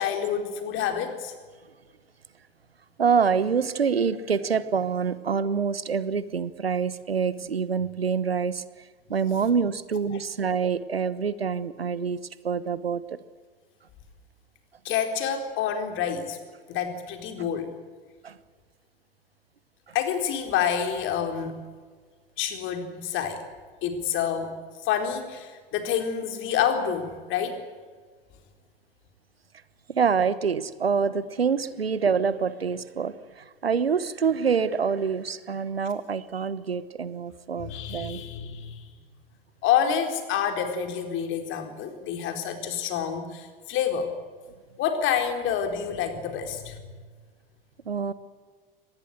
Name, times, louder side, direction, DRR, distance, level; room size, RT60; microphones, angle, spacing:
voice 1, 0.0-1.3 14.8-16.4 16.7-17.7 19.9-21.6 22.4-23.4 23.8-24.6 24.8-27.6 37.6-38.9 39.6-44.1 44.8-46.9, left 8 dB, 40° left, 6 dB, 4.2 m, -28 dB
voice 2, 3.0-8.6 9.1-13.2 17.4-17.5 18.2-18.4 29.9-38.2 47.8-48.1, right 6 dB, 80° right, 16 dB, 1.2 m, -26 dB
24.5 x 20.0 x 8.1 m, 1.5 s
figure-of-eight pair, 85°, 30 cm